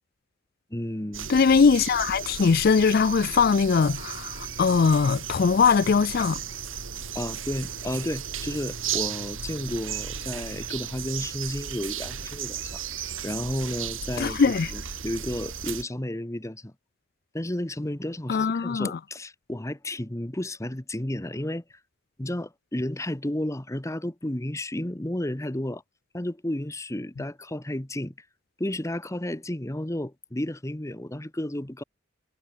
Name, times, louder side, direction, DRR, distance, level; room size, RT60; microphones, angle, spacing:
voice 1, 0.7-1.3 7.1-12.8 13.2-16.7 17.3-21.6 22.2-25.8 26.1-28.1 28.6-31.8, left 1 dB, 15° left, 1.1 m, -32 dB
sound 1, 1.1-15.8, right 8 dB, 75° right, 2.5 m, -35 dB
voice 2, 1.3-6.4 14.2-14.7 18.3-19.0, left 5 dB, 50° left, 0.4 m, -21 dB
head